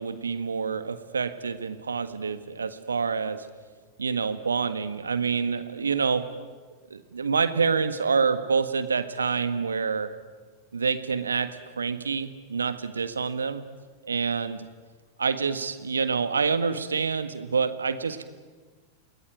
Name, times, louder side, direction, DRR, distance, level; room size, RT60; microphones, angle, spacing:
voice 1, 0.0-3.5 4.0-6.3 6.9-10.1 10.7-13.6 14.0-14.7 15.2-18.2, right 5 dB, 75° right, 11 dB, 1.6 m, -27 dB
29.5 x 20.0 x 9.4 m, 1.4 s
figure-of-eight pair, 90°, 0 cm